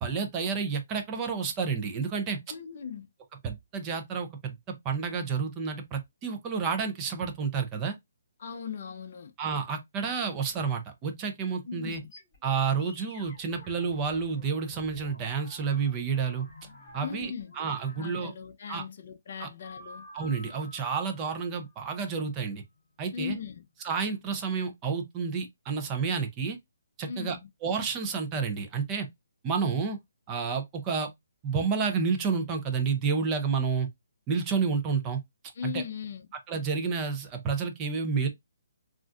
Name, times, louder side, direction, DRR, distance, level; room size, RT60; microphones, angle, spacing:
voice 1, 0.0-2.4 3.4-8.0 9.4-12.0 12.4-16.5 16.9-17.3 17.6-18.3 18.7-18.8 19.4-19.5 20.1-22.6 23.0-23.4 23.8-26.6 27.0-29.1 29.4-30.0 30.3-31.1 31.4-33.9 34.3-35.2 35.6-35.8 36.5-38.3, right 5 dB, 15° right, 0.5 m, -30 dB
voice 2, 2.5-3.1 8.4-9.3 11.6-12.1 17.0-17.5 18.0-20.1 23.1-23.7 27.1-27.5 35.5-36.3, left 7 dB, 45° left, 0.5 m, -38 dB
sound 1, 11.9-18.4 19.6-22.2, left 2 dB, 20° left, 2.3 m, -50 dB
3.8 x 2.4 x 2.4 m
hypercardioid pair, 170°, 0 cm